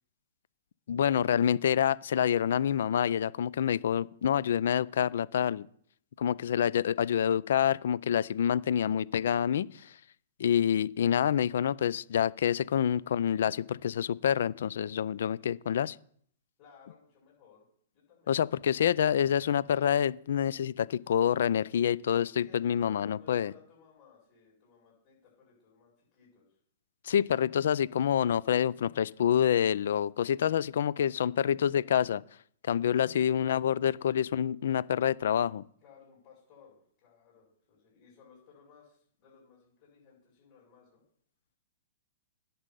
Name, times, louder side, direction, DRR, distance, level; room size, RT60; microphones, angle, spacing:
voice 1, 0.9-5.7 6.2-9.9 10.4-16.0 18.3-23.5 27.0-32.2 32.7-35.6, left 9 dB, 70° left, 0.4 m, -27 dB
voice 2, 16.6-17.7 17.9-18.8 22.4-26.6 32.9-33.2 35.8-41.0, left 6 dB, 40° left, 5.8 m, -59 dB
10.0 x 5.5 x 7.5 m
hypercardioid pair, 130°, 0 cm